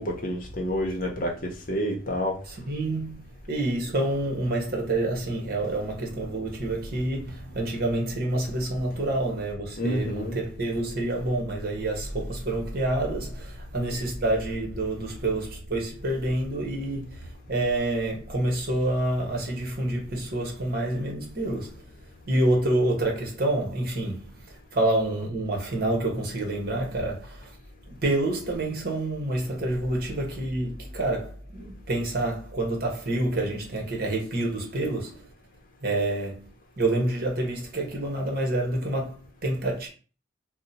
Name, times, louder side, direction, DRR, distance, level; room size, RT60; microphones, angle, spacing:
voice 1, 0.0-2.4 9.8-10.4, equal, 45° left, 0.7 m, -29 dB
voice 2, 2.5-21.8 22.3-27.6 27.9-35.3 35.8-36.5 36.8-39.9, right 1 dB, 55° right, 1.0 m, -28 dB
2.7 x 2.1 x 4.0 m
head